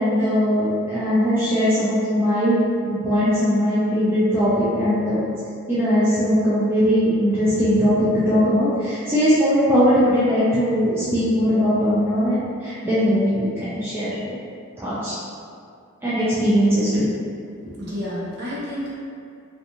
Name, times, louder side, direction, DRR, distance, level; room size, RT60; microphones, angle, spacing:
voice 1, 0.0-5.2 5.7-14.4 14.8-15.2 16.0-17.1, equal, 10° right, -11 dB, 0.3 m, -20 dB
voice 2, 17.6-18.9, equal, 50° right, -8 dB, 0.7 m, -30 dB
2.4 x 2.4 x 2.8 m, 2.3 s
head